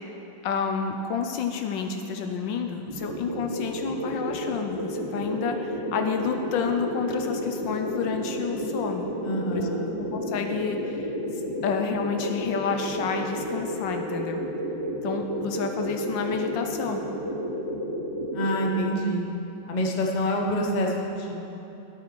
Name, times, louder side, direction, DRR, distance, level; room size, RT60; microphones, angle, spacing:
voice 1, 0.4-9.1 9.5-9.6 10.0-11.1 11.6-14.4 15.0-17.0, left 6 dB, 70° left, 5 dB, 1.2 m, -30 dB
sound 1, 2.9-18.7, equal, 25° right, 0.5 m, -31 dB
voice 2, 9.2-9.8 18.3-19.2 19.7-21.3, equal, 35° left, 0 dB, 0.7 m, -26 dB
12.0 x 8.1 x 4.5 m, 2.9 s
omnidirectional pair, 2.2 m